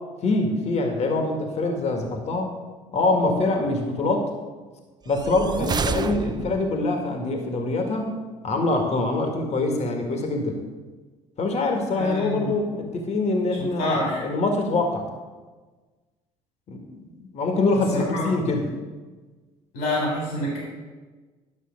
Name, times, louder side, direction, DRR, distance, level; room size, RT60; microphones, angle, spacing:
voice 1, 0.2-2.5 2.9-4.3 5.1-8.1 8.4-10.6 11.4-15.1 16.7-18.7, left 2 dB, 50° left, 3 dB, 1.9 m, -24 dB
sound 1, 5.1-6.9, right 5 dB, 30° right, 0.6 m, -28 dB
voice 2, 11.9-12.5 13.8-14.2 17.9-18.2 19.7-20.6, left 1 dB, 85° left, -3 dB, 3.5 m, -27 dB
11.0 x 6.2 x 6.4 m, 1.3 s
hypercardioid pair, 65°, 15 cm